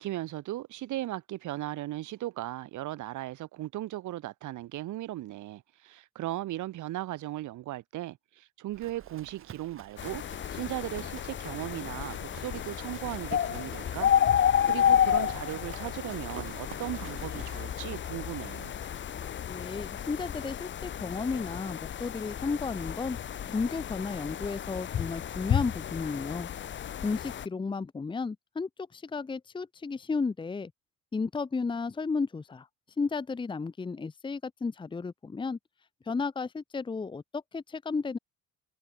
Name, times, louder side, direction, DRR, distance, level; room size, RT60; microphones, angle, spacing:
voice 1, 0.0-10.2 10.5-18.7, right 15 dB, 70° right, 3.6 m, -37 dB
Livestock farm animals working animals, 8.7-19.5, right 9 dB, 40° right, 5.1 m, -50 dB
sound 1, 10.0-27.5, left 9 dB, 35° left, 1.3 m, -31 dB
voice 2, 19.5-23.2 23.5-26.5 27.0-30.7 31.1-32.7 33.0-35.6 36.0-38.2, left 4 dB, 15° left, 1.2 m, -33 dB
cardioid pair, 165°, 32 cm